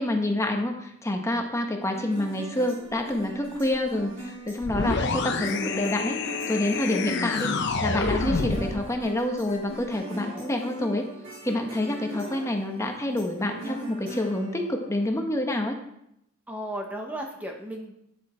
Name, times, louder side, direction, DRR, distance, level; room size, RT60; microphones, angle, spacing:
voice 1, 0.0-6.2 6.5-11.0 11.4-15.8, left 1 dB, 15° left, 3 dB, 0.9 m, -28 dB
Slide Guitar, 1.9-15.1, right 2 dB, 60° right, 4.1 m, -40 dB
sound 1, 4.6-8.8, left 4 dB, 60° left, 0.8 m, -28 dB
voice 2, 16.5-18.0, right 1 dB, 10° right, 1 dB, 0.9 m, -35 dB
9.7 x 7.0 x 4.3 m, 0.78 s
head